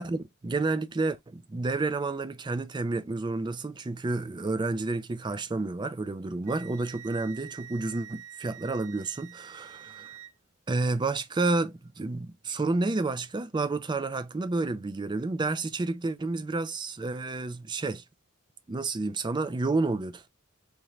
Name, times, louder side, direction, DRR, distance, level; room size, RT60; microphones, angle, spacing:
voice 1, 0.0-9.7 10.7-18.0 18.7-20.3, right 3 dB, 20° right, 0.4 m, -30 dB
Wind instrument woodwind instrument, 6.4-10.3, right 10 dB, 80° right, 0.5 m, -47 dB
3.6 x 2.9 x 3.1 m
head